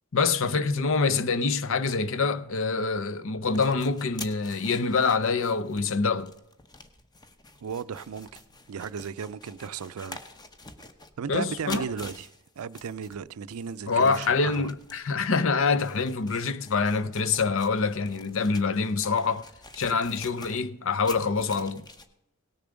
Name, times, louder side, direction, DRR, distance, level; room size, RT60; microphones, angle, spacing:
voice 1, 0.1-6.3 11.3-11.9 13.9-19.5 19.7-21.8, left 4 dB, 60° left, 0.6 m, -25 dB
sound 1, 3.5-22.1, left 3 dB, 20° left, 0.8 m, -47 dB
voice 2, 7.6-8.4 8.7-10.2 11.2-12.3 12.6-14.7, right 6 dB, 75° right, 0.4 m, -35 dB
17.5 x 6.9 x 5.1 m
head